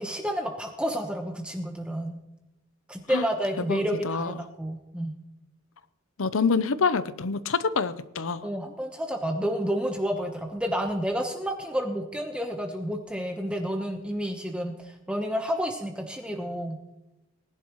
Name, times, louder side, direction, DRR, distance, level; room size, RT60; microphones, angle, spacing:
voice 1, 0.0-2.2 2.9-5.1 8.4-16.8, equal, 5° right, 2 dB, 1.1 m, -30 dB
voice 2, 3.7-4.4 6.2-8.4, left 5 dB, 75° left, 14 dB, 0.7 m, -26 dB
20.0 x 11.0 x 3.1 m, 0.94 s
head